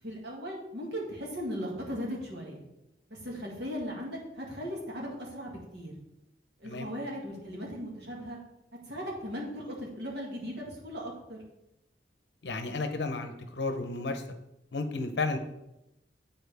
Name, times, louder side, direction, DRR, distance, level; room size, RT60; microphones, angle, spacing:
voice 1, 0.0-2.6 3.1-5.9 6.6-8.4 8.9-11.4, equal, 65° right, -3 dB, 2.0 m, -38 dB
voice 2, 12.4-14.2 14.7-15.4, left 3 dB, 70° left, 7 dB, 0.7 m, -32 dB
10.0 x 4.3 x 3.4 m, 0.90 s
head